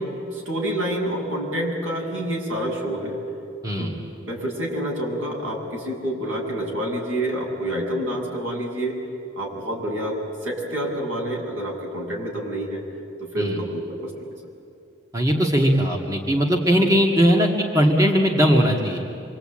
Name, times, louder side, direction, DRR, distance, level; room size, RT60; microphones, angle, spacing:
voice 1, 0.0-3.2 3.8-4.0 4.3-8.9 9.4-10.1 10.4-12.8 13.3-14.1, right 1 dB, 80° right, -1 dB, 7.3 m, -28 dB
voice 2, 15.1-17.5 17.7-19.0, equal, 15° right, 0 dB, 2.1 m, -19 dB
27.0 x 24.5 x 8.9 m, 2.6 s
head